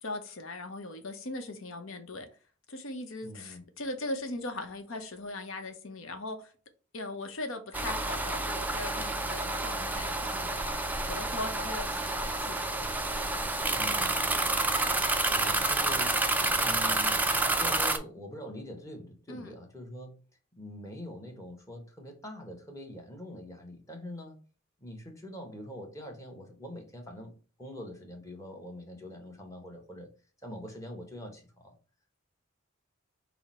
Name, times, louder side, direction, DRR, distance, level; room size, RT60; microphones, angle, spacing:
voice 1, 0.0-2.3 2.7-6.5 6.9-10.8 11.1-12.9 19.3-19.5, left 2 dB, 75° left, 0.8 m, -39 dB
voice 2, 3.2-3.6 13.7-14.5 15.3-16.2 16.6-17.2 17.6-20.2 20.5-24.4 24.8-27.3 27.6-30.1 30.4-31.7, equal, 15° left, 0.9 m, -44 dB
sound 1, 7.7-18.0, right 2 dB, 10° right, 0.3 m, -29 dB
5.6 x 2.0 x 4.2 m
head